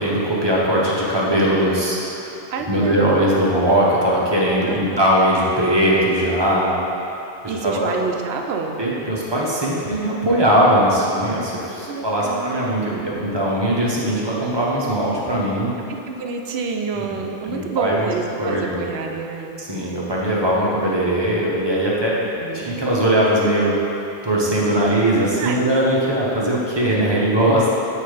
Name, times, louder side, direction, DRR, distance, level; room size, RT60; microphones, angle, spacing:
voice 1, 0.0-6.8 7.4-7.9 8.8-15.7 16.9-18.1 18.4-18.9 19.6-22.1 22.6-23.7 24.2-27.7, right 1 dB, 25° right, -5 dB, 0.8 m, -20 dB
voice 2, 2.5-3.4 4.7-5.0 7.5-8.8 11.9-13.3 15.9-19.5 22.4-22.7 25.4-25.6 26.8-26.9 27.2-27.3, right 5 dB, 75° right, 3 dB, 0.9 m, -28 dB
7.6 x 3.2 x 4.9 m, 2.9 s
omnidirectional pair, 1.1 m